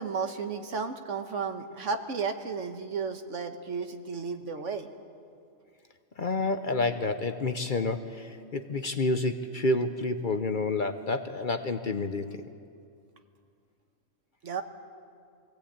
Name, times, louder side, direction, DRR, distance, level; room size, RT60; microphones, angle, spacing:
voice 1, 0.0-4.9 14.4-14.6, right 5 dB, 70° right, 7 dB, 1.5 m, -33 dB
voice 2, 6.2-12.4, left 2 dB, 45° left, 8 dB, 0.8 m, -29 dB
22.5 x 17.0 x 8.6 m, 2.4 s
omnidirectional pair, 1.3 m